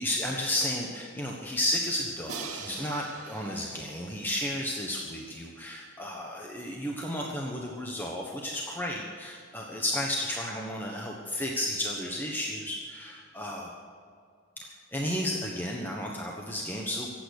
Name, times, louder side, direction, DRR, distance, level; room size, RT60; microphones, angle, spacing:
voice 1, 0.0-13.7 14.6-17.1, left 1 dB, 10° left, -1 dB, 1.2 m, -33 dB
Crash cymbal, 2.3-5.2, right 5 dB, 90° right, 2.1 m, -43 dB
23.0 x 8.9 x 6.6 m, 2.1 s
head